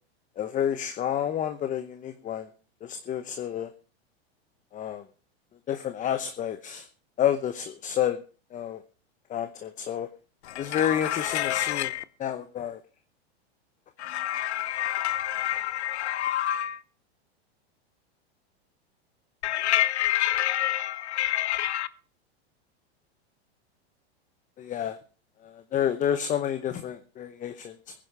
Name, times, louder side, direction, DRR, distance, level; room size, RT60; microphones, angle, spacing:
voice 1, 0.4-2.5 2.8-3.7 4.7-5.0 5.7-6.9 7.2-8.2 8.5-8.8 9.3-10.1 10.6-11.9 12.2-12.8 24.6-25.0 25.4-27.9, left 9 dB, 25° left, 11 dB, 0.8 m, -29 dB
sound 1, 10.4-12.0 14.0-16.8 19.4-21.9, left 12 dB, 90° left, 0.7 m, -28 dB
23.0 x 10.0 x 3.3 m, 0.36 s
hypercardioid pair, 120°, 32 cm